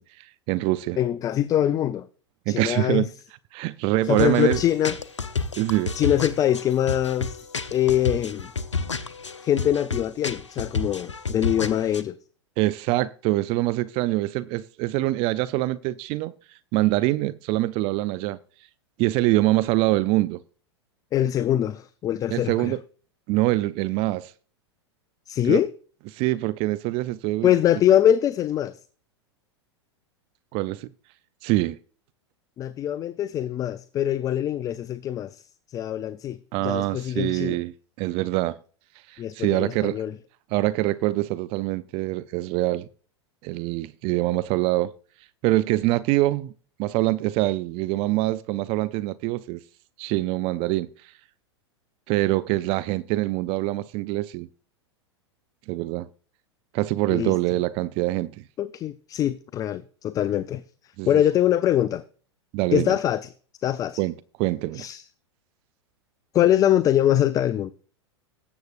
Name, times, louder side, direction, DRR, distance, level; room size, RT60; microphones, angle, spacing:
voice 1, 0.0-1.0 2.5-3.1 3.5-4.6 5.6-5.9 12.6-16.3 16.7-18.4 19.0-20.4 22.3-22.8 23.3-24.3 25.4-25.6 26.1-27.5 30.5-30.9 31.4-31.8 36.5-37.7 38.0-38.6 39.1-40.0 40.5-42.9 43.4-44.9 45.4-46.5 46.8-49.6 50.0-51.1 52.1-54.5 55.7-56.1 56.7-58.4 61.0-61.2 62.5-63.0 64.0-64.1 64.4-64.9, right 18 dB, 40° right, 0.4 m, -24 dB
voice 2, 1.0-2.1 2.5-3.1 4.1-5.0 5.9-8.5 9.4-12.2 21.1-22.7 25.3-25.7 27.4-28.8 32.6-35.4 35.7-37.6 39.2-40.1 57.1-57.4 58.6-60.6 61.1-62.0 62.7-63.3 63.6-64.0 64.7-65.0 66.3-67.7, left 11 dB, 25° left, 0.4 m, -23 dB
sound 1, 4.0-12.0, left 4 dB, 90° left, 0.8 m, -31 dB
18.0 x 7.9 x 2.5 m
figure-of-eight pair, 100°, 15 cm